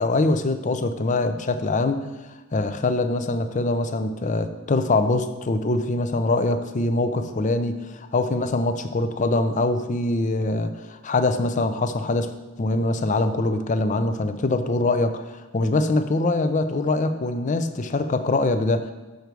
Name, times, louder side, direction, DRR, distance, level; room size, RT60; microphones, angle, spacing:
voice 1, 0.0-2.1 2.5-12.3 12.6-18.9, left 2 dB, 35° left, 9 dB, 0.5 m, -23 dB
6.8 x 6.5 x 4.6 m, 1.2 s
head